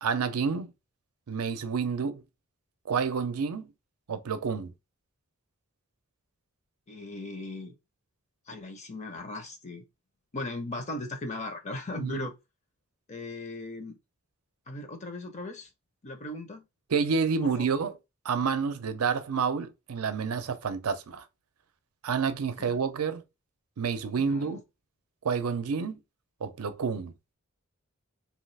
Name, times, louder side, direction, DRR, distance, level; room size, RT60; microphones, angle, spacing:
voice 1, 0.0-0.7 1.3-2.2 2.9-3.7 4.1-4.7 12.0-12.3 16.9-17.9 18.2-21.2 22.0-23.2 23.8-24.6 25.2-26.0 26.4-27.1, right 5 dB, 80° right, 0.5 m, -29 dB
voice 2, 6.9-7.8 8.5-9.8 10.3-12.3 13.1-14.0 14.7-15.7 16.0-16.6 17.4-17.7 22.6-22.8 24.1-24.6, left 2 dB, 30° left, 0.6 m, -38 dB
2.9 x 2.4 x 3.2 m
head